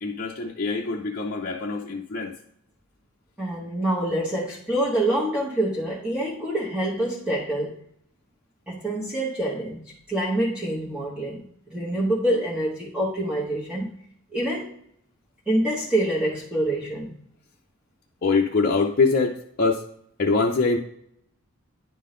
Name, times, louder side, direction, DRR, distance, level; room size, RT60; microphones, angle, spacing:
voice 1, 0.0-2.3 18.2-19.8 20.2-20.8, left 4 dB, 45° left, -1 dB, 0.6 m, -23 dB
voice 2, 3.4-7.8 8.7-9.8 10.1-13.9 14.3-14.7 15.5-17.1, right 1 dB, 5° right, -6 dB, 1.1 m, -26 dB
10.0 x 3.8 x 3.8 m, 0.70 s
head